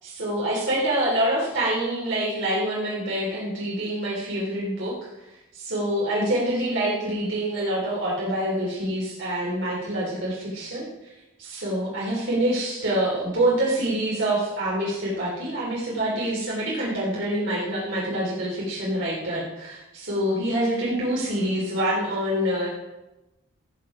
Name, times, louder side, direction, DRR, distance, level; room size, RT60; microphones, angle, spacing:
voice 1, 0.0-5.0 5.5-11.1 11.4-22.7, right 1 dB, 60° right, -5 dB, 3.6 m, -26 dB
17.0 x 8.6 x 5.0 m, 0.98 s
head